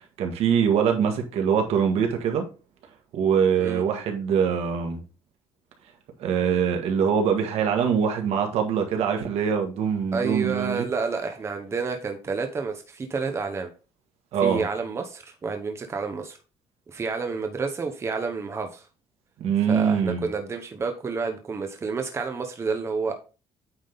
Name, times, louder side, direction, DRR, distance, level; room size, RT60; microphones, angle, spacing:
voice 1, 0.2-2.4 3.1-5.0 6.2-10.9 14.3-14.6 19.4-20.2, right 7 dB, 75° right, 1.6 m, -23 dB
voice 2, 10.1-13.7 14.4-16.4 16.9-18.9 19.7-23.2, right 4 dB, 25° right, 0.9 m, -29 dB
8.9 x 3.7 x 3.9 m
cardioid pair, 140°, 11 cm